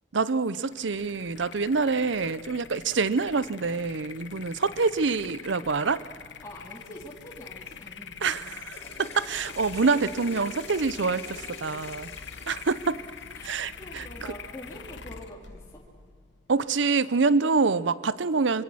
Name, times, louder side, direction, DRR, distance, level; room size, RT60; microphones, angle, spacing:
voice 1, 0.1-6.0 8.2-12.1 12.5-13.0 13.4-14.1 16.5-18.6, right 4 dB, 70° right, 17 dB, 0.7 m, -26 dB
sound 1, 0.6-16.9, left 6 dB, 65° left, 1.1 m, -44 dB
voice 2, 6.4-8.5 13.3-15.8, left 1 dB, 15° left, -3 dB, 2.7 m, -45 dB
Water / Toilet flush, 8.4-13.7, left 3 dB, 35° left, 4.2 m, -47 dB
25.0 x 23.5 x 6.3 m, 2.2 s
head